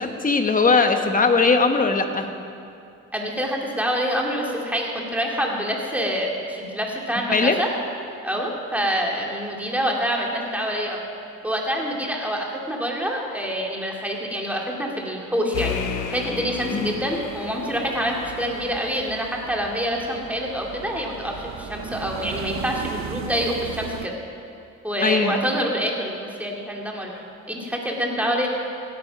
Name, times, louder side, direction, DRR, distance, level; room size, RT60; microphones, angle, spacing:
voice 1, 0.0-2.3 7.3-7.6 16.7-17.0 25.0-25.4, left 4 dB, 25° left, 6 dB, 1.2 m, -19 dB
voice 2, 3.1-7.7 8.2-11.0 11.4-15.8 16.1-24.1 24.8-27.2 27.5-28.5, equal, 5° right, -1 dB, 2.6 m, -26 dB
sound 1, 15.5-19.0, left 7 dB, 90° left, 1.1 m, -33 dB
sound 2, 16.6-24.1, right 8 dB, 65° right, 0.8 m, -37 dB
16.5 x 9.5 x 5.9 m, 2.5 s
cardioid pair, 90°, 30 cm